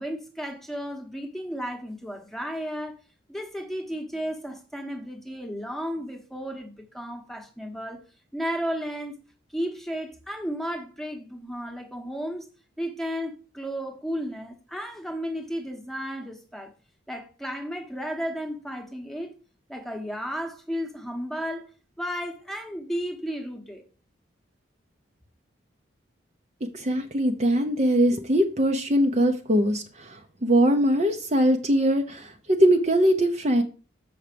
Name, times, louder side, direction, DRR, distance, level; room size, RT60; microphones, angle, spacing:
voice 1, 0.0-2.9 3.3-8.0 8.3-9.2 9.5-12.5 12.8-16.7 17.1-19.3 19.7-21.7 22.0-23.8, equal, ahead, 1.1 m, -33 dB
voice 2, 26.7-33.6, equal, 35° right, 0.7 m, -22 dB
7.1 x 5.8 x 5.1 m
head